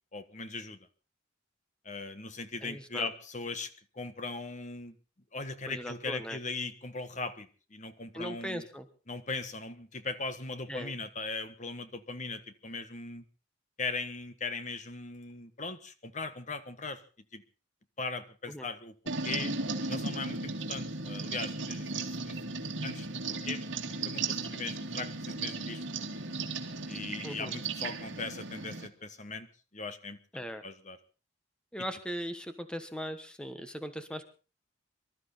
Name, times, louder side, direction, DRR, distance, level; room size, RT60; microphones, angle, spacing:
voice 1, 0.1-0.8 1.8-5.0 5.3-8.6 9.1-13.2 13.8-17.0 17.3-17.4 18.0-19.5 19.8-22.4 22.8-25.8 26.9-29.5 29.7-30.2 30.6-31.0, left 3 dB, 40° left, 11 dB, 1.4 m, -39 dB
voice 2, 2.6-3.1 5.7-6.4 8.1-8.9 10.7-10.9 18.5-18.7 27.2-27.5 30.3-30.6 31.7-34.3, equal, 5° left, 9 dB, 1.3 m, -39 dB
sound 1, 19.1-28.9, right 3 dB, 70° right, 2.3 m, -36 dB
25.0 x 13.0 x 4.1 m, 0.36 s
head